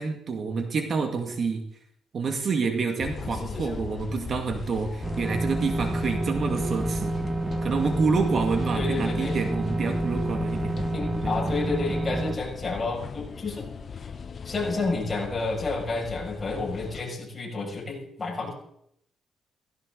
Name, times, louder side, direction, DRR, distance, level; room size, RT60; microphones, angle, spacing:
voice 1, 0.0-1.6 2.1-7.2 7.6-10.8 11.2-11.4, right 4 dB, 50° right, 5 dB, 2.2 m, -28 dB
sound 1, 3.0-17.0, left 6 dB, 45° left, 0.8 m, -38 dB
sound 2, 5.0-12.4, right 2 dB, 20° right, 1.3 m, -29 dB
voice 2, 8.7-9.4 10.9-13.6 14.0-14.1 14.4-18.5, left 3 dB, 25° left, -3 dB, 6.7 m, -30 dB
17.0 x 16.0 x 4.0 m, 0.72 s
cardioid pair, 90°, 0 cm